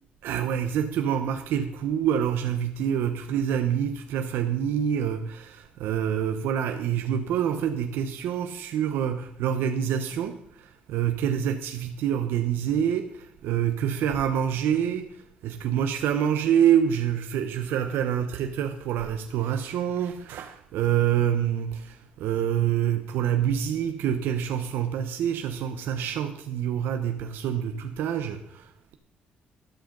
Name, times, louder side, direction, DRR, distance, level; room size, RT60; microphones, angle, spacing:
voice 1, 0.2-29.0, right 9 dB, 80° right, 6 dB, 1.0 m, -26 dB
13.0 x 11.5 x 3.9 m, 0.73 s
cardioid pair, 165°, 4 cm